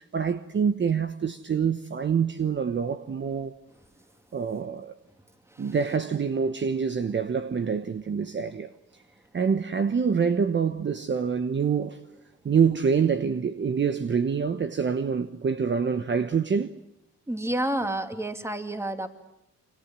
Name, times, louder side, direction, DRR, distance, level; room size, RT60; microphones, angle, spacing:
voice 1, 0.0-3.6 4.3-5.0 5.6-8.7 9.3-12.0 12.4-16.8, right 6 dB, 40° right, 1.2 m, -26 dB
voice 2, 17.3-19.1, right 1 dB, 10° right, 2.7 m, -30 dB
28.0 x 25.0 x 7.6 m
cardioid pair, 90°, 30 cm